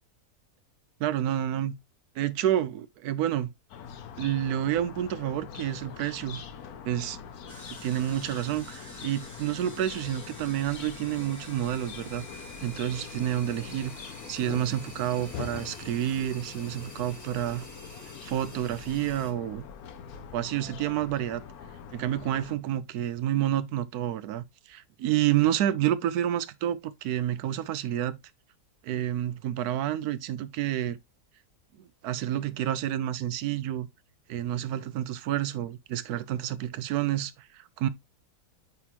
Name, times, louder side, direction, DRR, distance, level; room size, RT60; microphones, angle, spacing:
voice 1, 1.0-1.7 2.2-3.5 4.2-6.4 6.8-7.2 7.8-13.9 14.2-17.6 18.2-19.6 20.3-21.4 21.9-28.2 28.8-31.0 31.8-33.9 34.3-37.9, right 12 dB, 75° right, 1.1 m, -29 dB
sound 1, 3.7-22.6, left 7 dB, 70° left, 1.3 m, -43 dB
sound 2, 7.5-19.3, equal, 10° left, 1.6 m, -47 dB
9.1 x 3.9 x 2.9 m
omnidirectional pair, 1.7 m